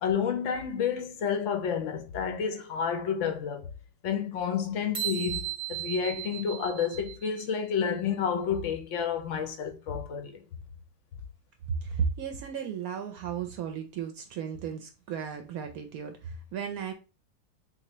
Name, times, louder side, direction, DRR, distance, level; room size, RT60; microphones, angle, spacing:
voice 1, 0.0-3.7 4.0-10.4, left 7 dB, 65° left, 0.8 m, -30 dB
sound 1, 4.9-7.6, right 12 dB, 35° right, 0.5 m, -36 dB
voice 2, 11.7-16.9, right 7 dB, 70° right, 0.9 m, -34 dB
3.6 x 2.7 x 2.9 m
omnidirectional pair, 1.7 m